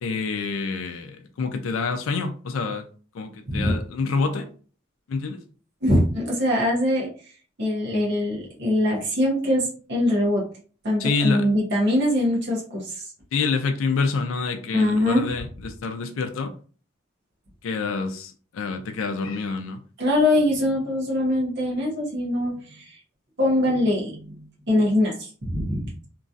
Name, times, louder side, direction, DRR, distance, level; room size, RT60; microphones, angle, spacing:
voice 1, 0.0-2.9 3.1-4.5 5.1-5.4 11.0-11.5 13.3-16.5 17.6-19.8, left 4 dB, 80° left, 0.4 m, -27 dB
voice 2, 5.8-7.1 7.6-10.4 10.8-13.0 14.7-15.2 20.0-22.9 23.4-24.4 24.7-26.1, left 1 dB, 55° right, 0.9 m, -23 dB
3.0 x 2.5 x 2.4 m
head